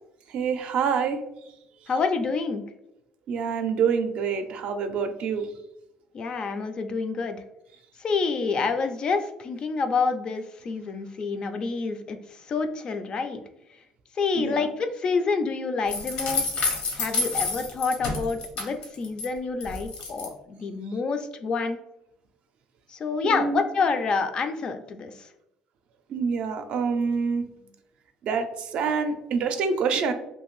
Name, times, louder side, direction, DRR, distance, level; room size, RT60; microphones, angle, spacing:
voice 1, 0.3-1.2 3.3-5.5 14.3-14.7 23.2-23.6 26.1-27.5 28.2-30.1, right 6 dB, 65° right, 7 dB, 0.4 m, -26 dB
voice 2, 1.9-2.6 6.1-7.4 8.0-12.2 12.4-13.4 14.2-16.7 16.9-21.8 22.9-25.3, left 4 dB, 40° left, 8 dB, 0.3 m, -28 dB
sound 1, 15.9-19.3 19.6-20.3, left 3 dB, 70° left, 0.7 m, -29 dB
2.6 x 2.4 x 3.0 m, 0.86 s
cardioid pair, 100°, 2 cm